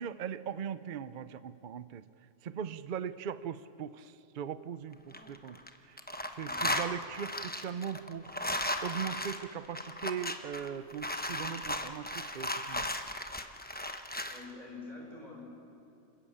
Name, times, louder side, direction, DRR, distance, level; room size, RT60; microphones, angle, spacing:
voice 1, 0.0-2.0 2.4-6.0 6.3-8.3 8.8-13.0, right 8 dB, 50° right, 14 dB, 0.6 m, -39 dB
sound 1, 4.9-5.7 6.0-14.4, left 1 dB, 10° left, 0.8 m, -36 dB
voice 2, 6.4-6.7 14.3-15.4, left 3 dB, 30° right, -1 dB, 5.0 m, -46 dB
27.5 x 14.5 x 8.7 m, 2.7 s
omnidirectional pair, 1.4 m